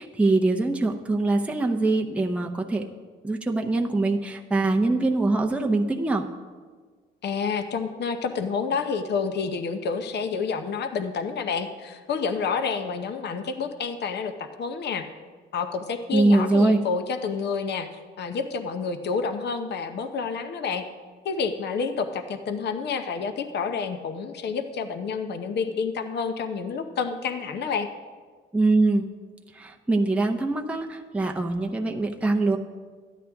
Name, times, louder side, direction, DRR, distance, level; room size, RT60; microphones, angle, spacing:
voice 1, 0.0-2.8 3.2-6.2 16.1-16.8 28.5-29.0 29.5-32.6, right 2 dB, 5° right, 2 dB, 0.7 m, -23 dB
voice 2, 7.2-15.0 15.5-17.9 18.2-20.8 21.2-27.9, left 5 dB, 55° left, 8 dB, 0.8 m, -29 dB
12.5 x 10.0 x 3.5 m, 1.5 s
cardioid pair, 105°, 20 cm